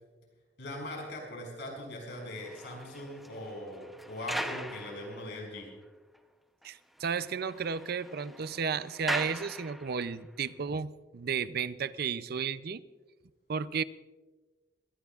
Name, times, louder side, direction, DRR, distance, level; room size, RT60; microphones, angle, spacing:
voice 1, 0.6-5.7, left 1 dB, 70° left, 1 dB, 5.9 m, -41 dB
sound 1, 2.1-5.6 6.1-6.2 6.6-6.7 7.0-10.2, equal, ahead, 0.7 m, -40 dB
voice 2, 6.6-12.8 13.5-13.8, right 6 dB, 60° right, 15 dB, 0.5 m, -33 dB
23.5 x 17.5 x 2.4 m, 1.3 s
head